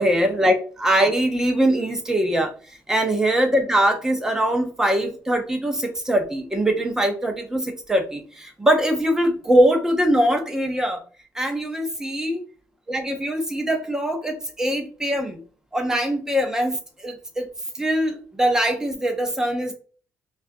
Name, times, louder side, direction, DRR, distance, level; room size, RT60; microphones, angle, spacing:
voice 1, 0.0-11.0 11.3-12.4 12.9-15.4 15.7-16.7 17.0-17.5 17.7-19.7, right 1 dB, 10° right, 4 dB, 0.8 m, -22 dB
5.5 x 2.5 x 2.7 m, 0.39 s
cardioid pair, 160°, 6 cm